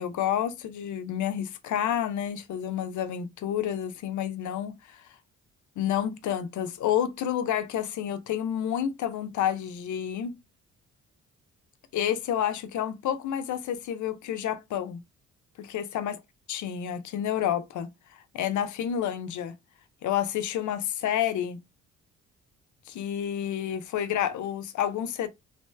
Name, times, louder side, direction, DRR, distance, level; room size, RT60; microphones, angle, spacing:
voice 1, 0.0-5.0 5.8-10.4 11.9-15.0 15.6-16.2 16.5-19.5 20.0-21.6 22.9-25.3, left 10 dB, 75° left, 0.7 m, -29 dB
3.2 x 3.0 x 3.1 m
cardioid pair, 90°, 30 cm